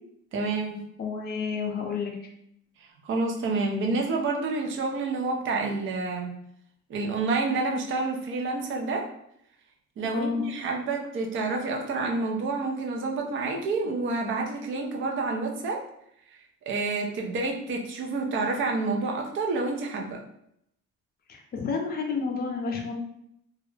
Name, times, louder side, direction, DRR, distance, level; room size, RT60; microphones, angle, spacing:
voice 1, 0.3-0.8 3.0-6.3 6.9-9.1 10.0-15.8 16.3-16.4 16.7-20.2, right 3 dB, 40° right, 1 dB, 0.4 m, -28 dB
voice 2, 1.0-2.2 10.1-10.4 21.3-22.9, left 5 dB, 30° left, 1 dB, 0.4 m, -30 dB
2.3 x 2.0 x 3.1 m, 0.73 s
cardioid pair, 170°, 33 cm